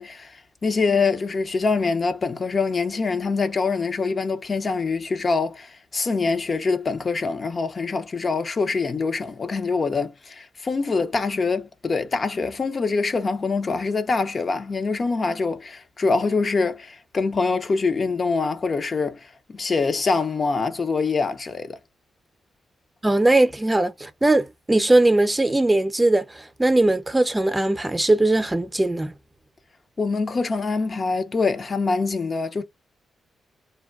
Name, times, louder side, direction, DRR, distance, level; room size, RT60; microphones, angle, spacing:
voice 1, 0.0-21.8 30.0-32.6, left 4 dB, 50° left, 0.6 m, -24 dB
voice 2, 23.0-29.1, right 2 dB, 20° right, 0.7 m, -20 dB
3.4 x 2.2 x 2.4 m
supercardioid pair, 45°, 0 cm